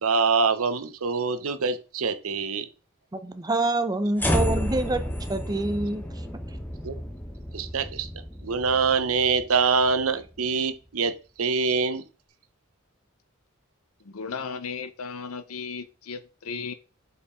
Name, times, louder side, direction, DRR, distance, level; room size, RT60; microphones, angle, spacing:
voice 1, 0.0-2.7 6.8-6.9 7.5-8.1 8.4-11.1 11.4-12.0, right 4 dB, 80° right, 0.8 m, -24 dB
voice 2, 3.1-5.0 5.3-6.0, right 2 dB, 20° right, 0.6 m, -26 dB
sound 1, 4.2-10.5, equal, 10° left, 0.9 m, -31 dB
voice 3, 14.0-16.7, left 5 dB, 85° left, 0.8 m, -35 dB
5.1 x 4.9 x 4.9 m
head